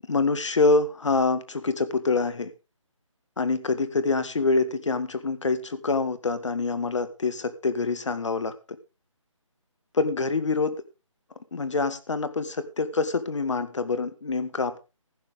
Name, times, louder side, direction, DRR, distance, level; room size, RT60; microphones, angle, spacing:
voice 1, 0.0-2.5 3.4-8.5 9.9-10.8 11.5-14.8, left 3 dB, 65° left, 12 dB, 1.9 m, -25 dB
15.0 x 11.0 x 3.7 m, 0.30 s
hypercardioid pair, 170°, 17 cm